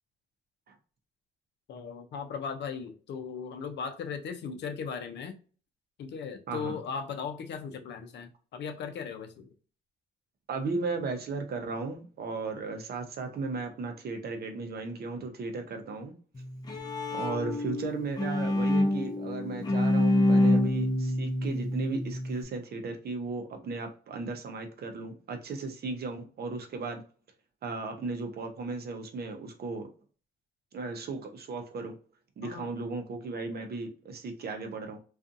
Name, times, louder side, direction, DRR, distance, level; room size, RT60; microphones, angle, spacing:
voice 1, 1.7-5.4 6.0-9.5 32.4-32.7, left 6 dB, 60° left, 0.6 m, -37 dB
voice 2, 10.5-16.1 17.1-27.0 27.6-29.9 30.7-32.0 32.4-35.0, right 3 dB, 50° right, 0.6 m, -36 dB
Bowed string instrument, 16.4-22.4, left 1 dB, 20° left, 0.6 m, -27 dB
2.5 x 2.4 x 2.5 m
cardioid pair, 90°, 20 cm